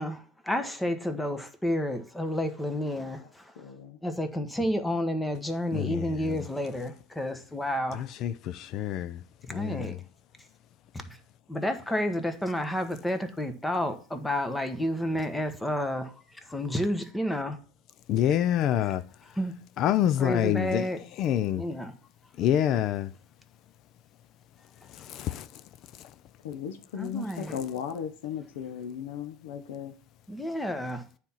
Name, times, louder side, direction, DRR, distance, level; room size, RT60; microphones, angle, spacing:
voice 1, 0.0-3.5 4.0-8.0 9.5-10.0 11.1-11.2 11.5-16.1 16.5-17.6 19.3-19.5 20.2-21.0 21.6-21.9 27.0-27.6 30.3-31.0, equal, 10° left, 1.1 m, -30 dB
voice 2, 2.7-3.3 3.6-4.0 26.4-29.9, left 8 dB, 85° left, 0.9 m, -37 dB
voice 3, 5.7-6.4 7.9-9.2 9.5-10.0 18.1-19.0 19.8-20.9 21.2-21.6 22.4-23.1 24.9-25.5, left 11 dB, 50° left, 0.5 m, -27 dB
9.1 x 4.3 x 5.6 m
supercardioid pair, 110°, 0 cm